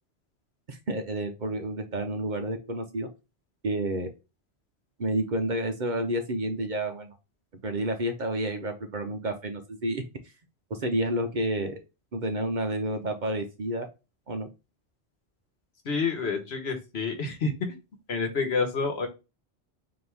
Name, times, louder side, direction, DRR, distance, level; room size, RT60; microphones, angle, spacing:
voice 1, 0.7-3.1 3.6-4.1 5.0-7.1 7.6-10.0 10.7-11.8 12.1-13.9 14.3-14.5, right 1 dB, 50° right, 6 dB, 0.8 m, -30 dB
voice 2, 15.8-17.5 18.1-19.1, left 4 dB, 65° left, 5 dB, 1.2 m, -28 dB
4.4 x 2.8 x 3.3 m, 0.27 s
omnidirectional pair, 1.2 m